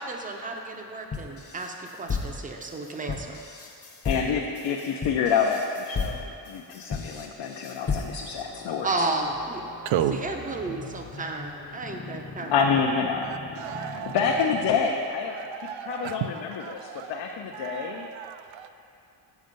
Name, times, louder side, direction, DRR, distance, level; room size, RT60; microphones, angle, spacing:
voice 1, 0.0-3.4 8.8-9.6 10.1-12.5, right 2 dB, 20° right, 3 dB, 0.5 m, -32 dB
sound 1, 1.1-8.4, left 5 dB, 30° left, 0.9 m, -33 dB
voice 2, 4.0-9.1 12.5-13.3 13.8-18.1, left 6 dB, 65° left, 1 dB, 0.6 m, -28 dB
sound 2, 8.2-15.2, left 4 dB, 90° left, 1.1 m, -42 dB
voice 3, 9.9-10.2 13.2-14.2 15.3-16.2 16.6-17.2 17.5-18.7, right 10 dB, 80° right, 9 dB, 0.6 m, -32 dB
8.2 x 5.3 x 5.2 m, 2.7 s
cardioid pair, 145°, 46 cm